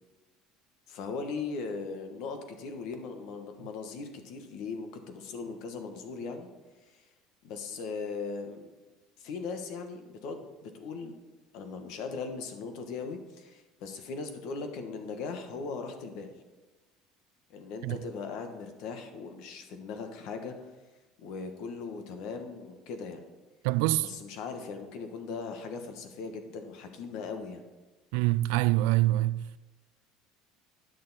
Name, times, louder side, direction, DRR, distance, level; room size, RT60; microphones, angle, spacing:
voice 1, 0.9-6.5 6.9-7.0 7.4-8.7 9.2-11.2 11.5-16.3 17.5-20.7 21.2-23.2 24.0-27.6, left 4 dB, 55° left, 1.2 m, -39 dB
voice 2, 23.6-24.1 28.1-29.6, right 17 dB, 80° right, 0.3 m, -25 dB
10.5 x 6.5 x 4.1 m
cardioid pair, 170°, 0 cm